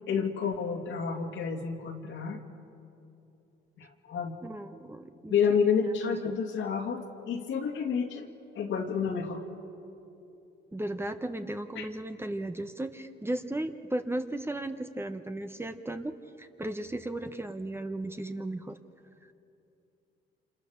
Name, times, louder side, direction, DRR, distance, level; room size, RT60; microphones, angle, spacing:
voice 1, 0.1-2.4 3.8-4.3 5.3-8.3 8.6-9.4 11.8-11.9, left 6 dB, 75° left, 3 dB, 2.4 m, -29 dB
voice 2, 4.4-5.3 6.1-6.4 10.7-18.8, right 1 dB, 10° right, 8 dB, 1.1 m, -35 dB
28.0 x 26.5 x 6.6 m, 2.9 s
cardioid pair, 90°, 20 cm